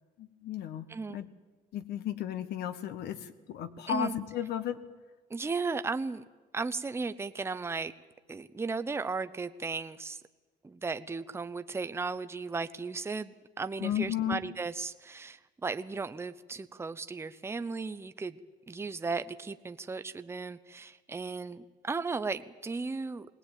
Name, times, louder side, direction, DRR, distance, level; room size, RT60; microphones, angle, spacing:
voice 1, 0.2-1.3 1.7-4.8 13.8-14.4, left 10 dB, 75° left, 11 dB, 1.5 m, -34 dB
voice 2, 5.3-6.2 6.5-7.9 8.3-10.2 10.6-18.4 18.7-23.3, right 4 dB, 15° right, 11 dB, 0.7 m, -35 dB
20.5 x 18.5 x 9.2 m, 1.3 s
cardioid pair, 110°, 17 cm